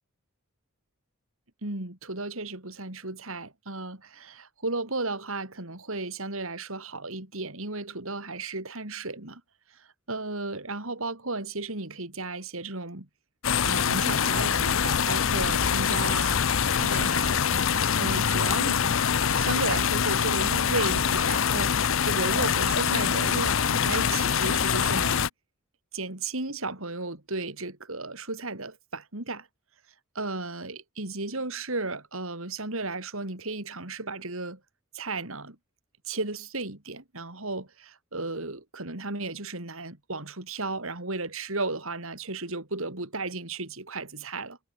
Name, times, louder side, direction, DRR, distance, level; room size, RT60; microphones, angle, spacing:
voice 1, 1.6-9.4 9.7-13.1 13.6-18.8 19.3-25.3 25.9-29.5 30.2-34.6 34.9-35.6 36.0-44.6, right 3 dB, 70° right, 3.8 m, -34 dB
sound 1, 13.4-25.3, left 7 dB, 65° left, 0.7 m, -24 dB
head